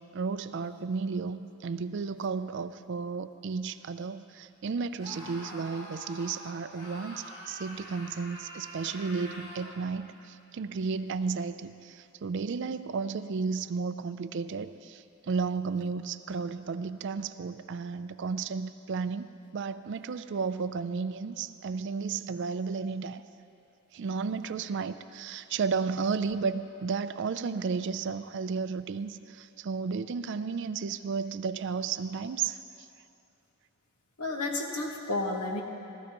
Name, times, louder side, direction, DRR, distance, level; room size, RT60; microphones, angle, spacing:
voice 1, 0.0-23.2 23.9-32.6, right 5 dB, 55° right, 11 dB, 0.4 m, -33 dB
Screaming, 5.0-9.8, equal, 45° left, 1.8 m, -45 dB
voice 2, 34.2-35.6, left 2 dB, 90° left, 1 dB, 1.4 m, -31 dB
19.0 x 13.0 x 3.0 m, 2.7 s
head